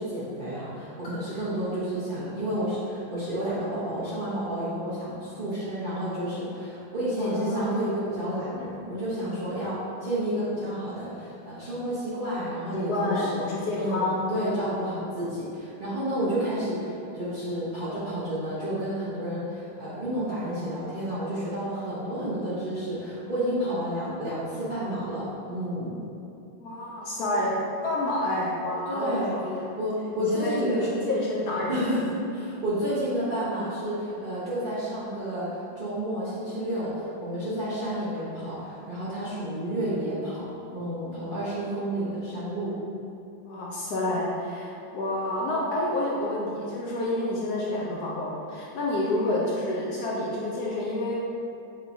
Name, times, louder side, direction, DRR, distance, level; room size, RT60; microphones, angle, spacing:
voice 1, 0.0-13.4 13.7-14.0 14.3-25.9 28.9-30.9 31.7-40.4 40.7-42.7, equal, 45° right, -12 dB, 0.6 m, -30 dB
voice 2, 7.2-7.7 12.7-14.6 26.6-27.5 27.8-29.6 30.2-31.9 43.5-51.3, left 1 dB, 70° left, -5 dB, 1.0 m, -29 dB
6.2 x 2.9 x 2.6 m, 2.7 s
omnidirectional pair, 2.0 m